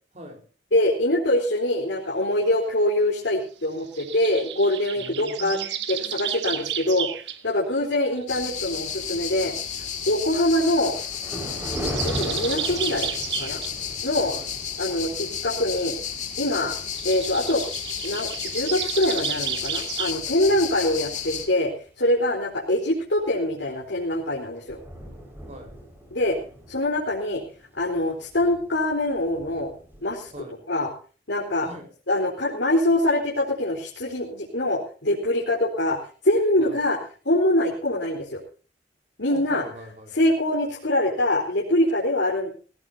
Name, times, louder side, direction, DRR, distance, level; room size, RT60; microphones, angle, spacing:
voice 1, 0.1-0.5 5.0-6.7 14.3-14.5 20.5-20.7 25.5-25.8 30.3-30.6 31.6-31.9 36.6-36.8 39.3-40.3, equal, 40° right, 3 dB, 4.5 m, -43 dB
voice 2, 0.7-5.6 5.9-7.1 7.4-9.5 10.1-11.0 12.0-13.1 13.4-13.6 14.0-14.3 14.8-16.0 16.4-16.7 17.0-17.6 18.0-21.7 22.0-24.8 26.1-26.4 26.7-27.4 27.8-29.7 30.0-30.3 30.7-30.9 31.3-31.7 32.1-36.0 36.2-37.0 37.2-38.4 39.2-39.6 40.1-42.5, left 1 dB, 80° left, -4 dB, 4.1 m, -24 dB
sound 1, 3.9-7.4 7.9-9.1 10.1-10.2 11.5-13.8 16.9-20.1, right 10 dB, 75° right, 1.4 m, -32 dB
sound 2, 8.3-21.5, left 8 dB, 40° left, 2.3 m, -32 dB
Thunder, 10.9-19.5 20.0-20.2 20.9-21.0 21.4-21.5 23.6-23.9 24.2-24.3 24.5-30.5, equal, 10° right, 5.4 m, -39 dB
18.5 x 17.5 x 2.8 m, 0.38 s
head